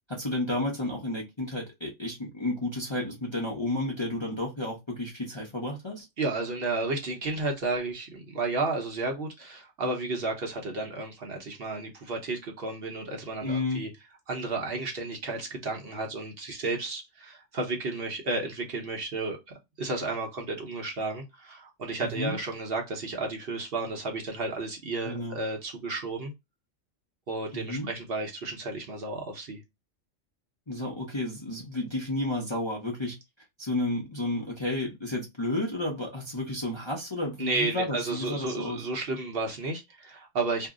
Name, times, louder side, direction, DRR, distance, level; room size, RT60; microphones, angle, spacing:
voice 1, 0.1-6.1 13.4-13.9 22.0-22.4 25.0-25.4 27.5-27.9 30.7-33.2 33.6-38.9, left 1 dB, 30° left, 0.6 m, -31 dB
voice 2, 6.2-13.9 14.3-19.4 19.8-26.3 27.3-29.6 37.4-40.7, right 3 dB, 55° right, 0.9 m, -32 dB
2.6 x 2.0 x 3.5 m
omnidirectional pair, 1.3 m